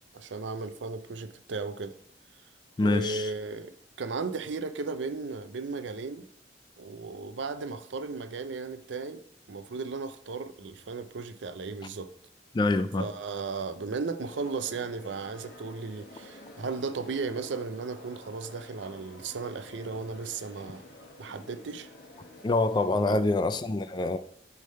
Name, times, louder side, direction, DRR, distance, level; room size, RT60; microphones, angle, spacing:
voice 1, 0.1-1.9 2.8-3.7 4.0-6.3 6.8-9.2 9.5-12.1 13.0-20.8 21.2-21.9 23.0-23.2, right 4 dB, 80° right, 0.5 m, -35 dB
voice 2, 2.8-3.3 12.5-13.1 22.4-24.2, left 2 dB, 25° left, 0.3 m, -26 dB
sound 1, 14.2-23.0, left 2 dB, 55° left, 1.3 m, -50 dB
6.4 x 3.5 x 5.5 m
head